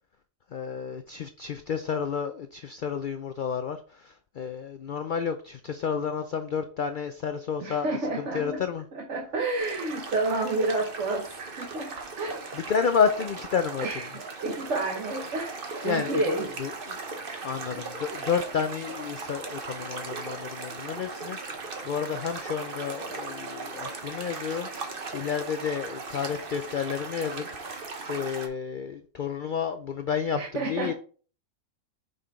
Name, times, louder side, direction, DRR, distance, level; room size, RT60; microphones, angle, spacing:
voice 1, 0.5-8.8 12.5-13.9 15.8-17.0 17.4-27.5 27.7-30.9, left 6 dB, 65° left, 8 dB, 0.5 m, -31 dB
voice 2, 7.6-8.6 8.9-12.5 13.8-16.6 17.7-17.8 30.3-30.9, right 2 dB, 60° right, 1 dB, 1.4 m, -30 dB
sound 1, 9.6-28.5, right 4 dB, 45° right, 1.1 m, -38 dB
5.7 x 5.2 x 3.6 m, 0.40 s
omnidirectional pair, 1.4 m